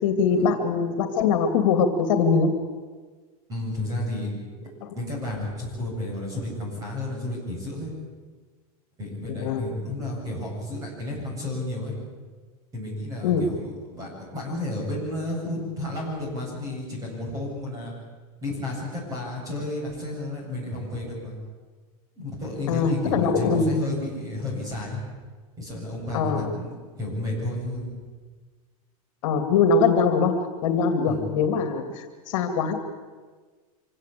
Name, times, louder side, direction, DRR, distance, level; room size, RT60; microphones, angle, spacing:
voice 1, 0.0-2.5 9.4-9.6 13.2-13.4 22.7-23.7 26.1-26.5 29.2-30.3 30.6-32.8, left 5 dB, 55° left, 7 dB, 2.5 m, -22 dB
voice 2, 3.5-4.3 4.9-7.9 9.0-11.9 12.7-17.9 18.4-21.3 22.2-25.0 25.6-27.9 31.1-31.2, left 1 dB, 20° right, -1 dB, 7.5 m, -32 dB
25.5 x 17.0 x 8.5 m, 1.4 s
supercardioid pair, 175°, 19 cm